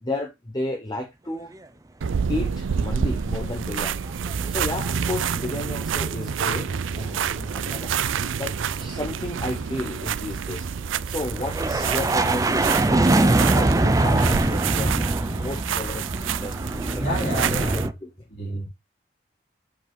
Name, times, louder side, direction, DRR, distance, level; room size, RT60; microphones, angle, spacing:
voice 1, 0.0-1.5 2.3-4.2 4.5-7.9 8.4-10.7 11.1-15.0 15.3-17.0 17.7-18.1, left 2 dB, 20° left, 0.9 m, -33 dB
sound 1, 2.0-17.9, right 7 dB, 85° right, 0.5 m, -28 dB
sound 2, 3.8-4.7 5.0-5.9 6.1-17.9, right 2 dB, 20° right, 0.5 m, -24 dB
voice 2, 16.9-17.8 18.3-18.7, right 1 dB, 65° left, 3.9 m, -29 dB
7.7 x 4.7 x 3.9 m
head